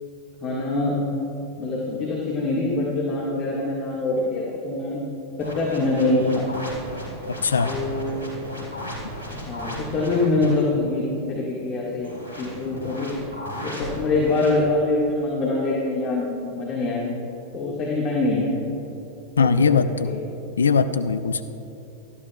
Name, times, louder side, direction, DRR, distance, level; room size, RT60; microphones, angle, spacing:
voice 1, 0.4-1.0 1.6-5.0 5.4-6.5 7.6-8.2 9.4-13.2 13.6-17.0 17.5-18.6 19.4-20.2, left 2 dB, 35° left, -4 dB, 1.7 m, -24 dB
sound 1, 5.4-10.6 12.0-14.5, equal, 75° right, 3.1 m, -35 dB
voice 2, 7.4-7.7 19.4-20.1 20.6-21.4, left 5 dB, 70° left, 12 dB, 0.5 m, -20 dB
19.5 x 13.0 x 2.4 m, 2.9 s
figure-of-eight pair, 90°, 0 cm